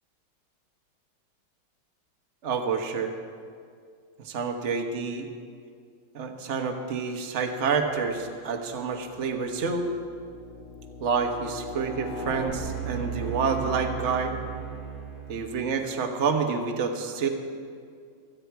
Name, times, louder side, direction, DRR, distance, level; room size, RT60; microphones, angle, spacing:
voice 1, 2.4-3.1 4.2-5.3 6.1-9.9 11.0-14.3 15.3-17.3, right 5 dB, 45° right, 4 dB, 1.2 m, -28 dB
sound 1, 8.2-8.3 8.9-15.7, right 4 dB, 35° left, 2.2 m, -37 dB
24.0 x 9.2 x 4.6 m, 2.2 s
omnidirectional pair, 2.3 m